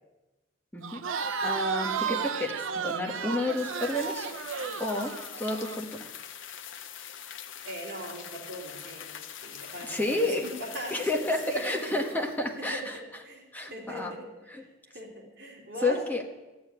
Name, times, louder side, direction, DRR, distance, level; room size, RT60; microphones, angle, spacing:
voice 1, 0.7-1.0 1.4-4.3 4.8-6.1 9.9-10.4 10.9-13.2 13.5-14.1 14.5-14.6 15.8-16.2, left 2 dB, 10° left, 0 dB, 1.3 m, -30 dB
Crowd, 0.8-5.8, right 6 dB, 75° right, 0.6 m, -33 dB
sound 1, 3.5-12.5, left 9 dB, 70° left, 0.6 m, -44 dB
voice 2, 7.6-9.1 9.4-10.9 11.5-12.0 12.7-14.3 14.9-16.0, equal, 50° right, -2 dB, 3.1 m, -40 dB
13.5 x 7.2 x 9.6 m, 1.1 s
head